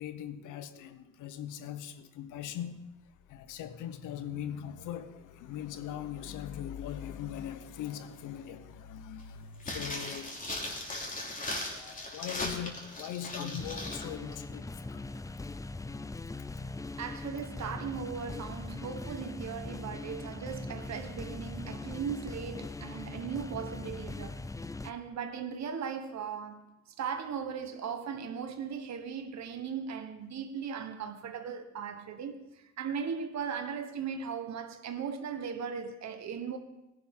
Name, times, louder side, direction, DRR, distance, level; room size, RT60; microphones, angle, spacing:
voice 1, 0.0-2.8 3.3-10.5 11.6-15.1 16.4-16.8, left 10 dB, 90° left, 0.9 m, -41 dB
sound 1, 9.6-14.0 14.3-14.4, left 1 dB, 25° left, 2.9 m, -38 dB
sound 2, 13.4-24.9, left 3 dB, 10° left, 0.5 m, -41 dB
voice 2, 17.0-24.5 24.8-36.6, right 7 dB, 65° right, 1.3 m, -38 dB
17.0 x 11.0 x 3.7 m
cardioid pair, 90°, 30 cm